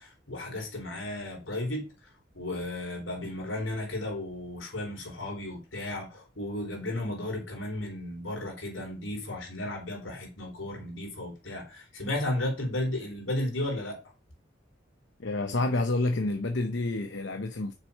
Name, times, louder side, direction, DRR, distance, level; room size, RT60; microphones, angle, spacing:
voice 1, 0.0-1.8 2.3-14.0, left 1 dB, 85° left, 3.9 m, -34 dB
voice 2, 15.2-17.7, left 2 dB, 70° left, 0.8 m, -29 dB
6.8 x 6.1 x 5.4 m
head